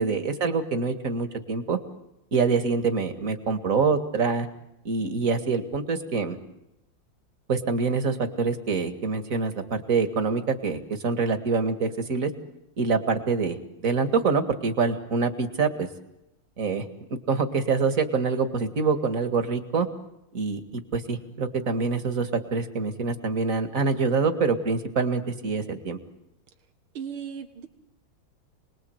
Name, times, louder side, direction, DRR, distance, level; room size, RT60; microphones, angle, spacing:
voice 1, 0.0-1.8 2.3-4.5 4.8-6.4 7.5-12.3 12.8-13.6 13.8-15.9 16.6-16.8 17.1-19.9 20.3-26.0, right 4 dB, 40° right, 8 dB, 2.3 m, -25 dB
voice 2, 26.9-27.7, right 7 dB, 90° right, 7 dB, 2.4 m, -37 dB
30.0 x 21.0 x 8.0 m, 0.87 s
omnidirectional pair, 2.2 m